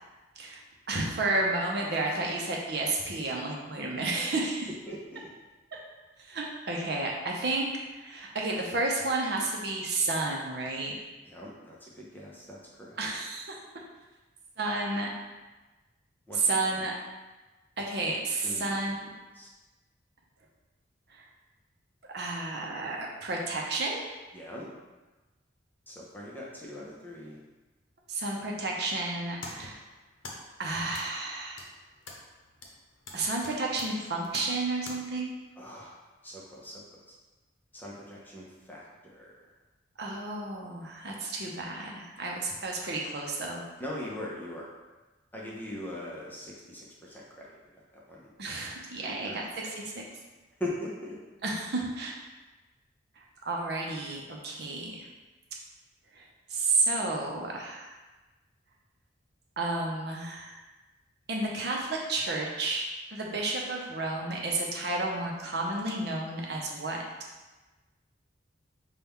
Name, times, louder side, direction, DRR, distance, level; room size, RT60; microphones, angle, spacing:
voice 1, 0.9-4.7 6.3-10.9 13.0-13.6 14.6-15.1 16.4-16.9 17.8-19.1 21.1-21.3 22.1-24.1 28.1-29.8 30.6-31.7 33.1-35.4 40.0-43.6 48.4-50.0 51.4-52.1 53.4-55.1 56.1-58.0 59.6-60.6 61.3-67.0, right 2 dB, 55° right, -1 dB, 0.7 m, -31 dB
voice 2, 4.9-5.3 11.3-13.0 16.3-16.5 18.4-18.7 19.3-19.5 24.3-24.7 25.9-27.4 35.6-35.9 36.2-37.1 37.7-39.5 43.8-44.7 45.3-47.6 47.9-48.3 49.0-49.4 50.6-51.2, left 1 dB, 10° left, -5 dB, 0.6 m, -41 dB
sound 1, 29.1-35.0, left 2 dB, 85° left, 0.7 m, -47 dB
5.6 x 2.3 x 3.5 m, 1.2 s
head